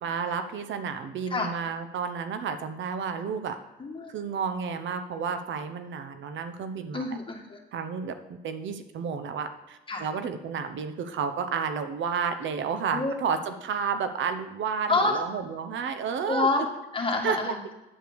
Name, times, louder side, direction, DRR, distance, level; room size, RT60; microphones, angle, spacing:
voice 1, 0.0-3.6 4.1-7.0 7.7-16.5 17.2-17.5, right 6 dB, 70° right, 9 dB, 0.9 m, -31 dB
voice 2, 3.8-4.1 6.9-7.6 9.9-10.0 12.9-13.1 14.9-15.2 16.3-16.7 16.9-17.6, left 3 dB, 25° left, 1 dB, 1.9 m, -27 dB
9.9 x 4.8 x 6.9 m, 1.0 s
cardioid pair, 90°, 20 cm